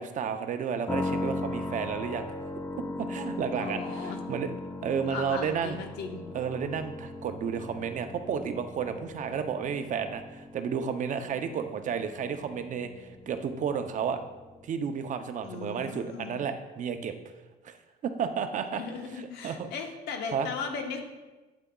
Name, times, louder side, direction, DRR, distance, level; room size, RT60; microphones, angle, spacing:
voice 1, 0.0-2.2 3.0-4.5 4.8-5.8 6.3-14.2 14.6-17.1 17.6-17.8 18.0-18.8 19.4-19.7 20.3-20.5, right 7 dB, 50° right, 8 dB, 0.6 m, -32 dB
sound 1, 0.9-14.7, left 2 dB, 15° left, 0.7 m, -39 dB
voice 2, 3.6-4.2 5.1-6.2 15.4-16.4 18.7-21.0, left 5 dB, 80° left, 3 dB, 1.1 m, -37 dB
8.5 x 8.1 x 2.3 m, 1.2 s
cardioid pair, 110°, 17 cm